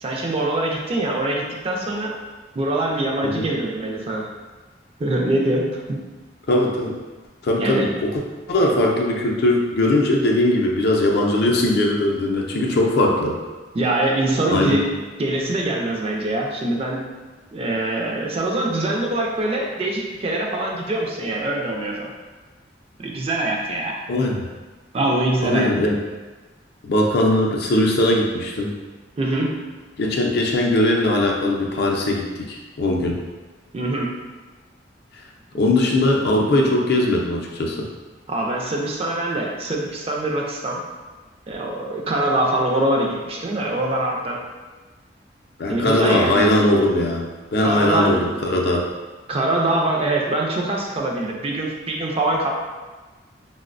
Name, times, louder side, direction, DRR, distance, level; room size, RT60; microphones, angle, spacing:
voice 1, 0.0-2.1 2.6-4.3 5.0-5.8 7.6-7.9 12.5-12.8 13.7-14.9 15.2-17.1 17.5-22.1 23.0-24.0 24.9-25.7 29.2-29.6 33.7-34.2 38.3-40.8 41.5-44.4 45.7-46.5 47.6-48.1 49.3-52.5, right 1 dB, 30° right, -1 dB, 0.4 m, -23 dB
voice 2, 6.5-7.0 7.4-8.2 8.5-13.3 14.5-14.8 24.1-24.5 25.4-25.9 26.8-28.7 30.0-33.2 35.5-37.9 45.6-48.8, left 1 dB, 60° left, -1 dB, 0.4 m, -20 dB
3.9 x 2.0 x 2.4 m, 1.3 s
head